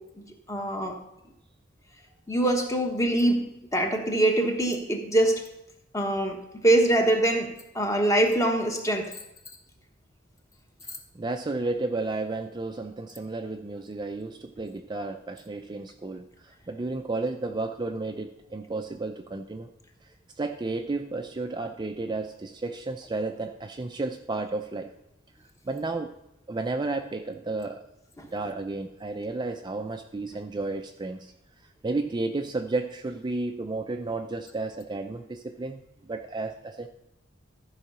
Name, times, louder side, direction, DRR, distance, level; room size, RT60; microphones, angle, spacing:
voice 1, 0.5-1.0 2.3-3.4 3.7-5.4 5.9-6.4 6.6-9.0 28.2-28.3, right 1 dB, 15° left, 3 dB, 1.1 m, -23 dB
voice 2, 10.8-19.7 20.0-24.9 25.7-26.1 26.5-27.9 28.3-31.3 31.8-36.9, right 3 dB, 20° right, 5 dB, 0.4 m, -32 dB
13.5 x 4.8 x 5.5 m, 0.88 s
head